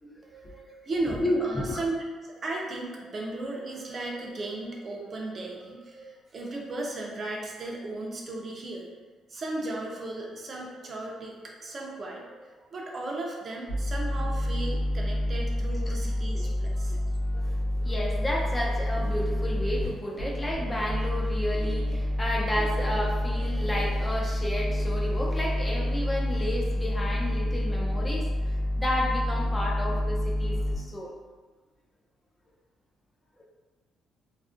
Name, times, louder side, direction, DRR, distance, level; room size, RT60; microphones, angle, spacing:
voice 1, 0.3-1.9 2.2-8.9 9.3-17.0 17.5-17.6, right 2 dB, 40° right, -1 dB, 0.5 m, -36 dB
voice 2, 1.1-1.8 15.9-16.0 16.3-16.4 16.9-17.0 17.3-31.1, left 1 dB, 20° left, -2 dB, 0.4 m, -32 dB
sound 1, 13.7-19.9 20.2-30.8, left 1 dB, 65° left, 0.8 m, -28 dB
2.6 x 2.4 x 2.4 m, 1.3 s
cardioid pair, 115°, 0 cm